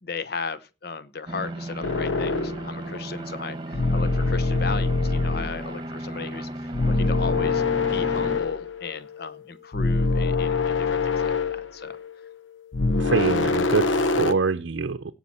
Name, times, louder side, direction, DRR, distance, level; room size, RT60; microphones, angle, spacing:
voice 1, 0.0-7.6 7.9-12.0, left 4 dB, 55° left, 14 dB, 0.9 m, -36 dB
sound 1, 1.3-8.4, right 1 dB, 25° right, 1.3 m, -35 dB
sound 2, 1.8-3.0 3.7-5.7 6.7-9.4 9.7-12.4 12.7-14.3, left 3 dB, 90° left, 0.7 m, -24 dB
voice 2, 13.0-15.1, right 4 dB, 90° right, 8 dB, 0.6 m, -25 dB
17.0 x 5.8 x 4.2 m, 0.29 s
head